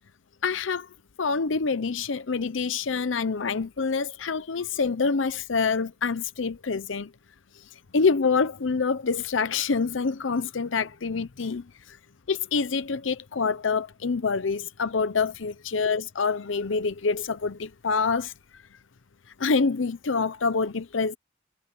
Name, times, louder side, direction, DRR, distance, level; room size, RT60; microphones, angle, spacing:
voice 1, 0.4-0.9 1.2-7.1 7.6-7.7 7.9-12.0 12.3-18.3 19.4-21.2, left 4 dB, 75° left, 0.7 m, -26 dB
head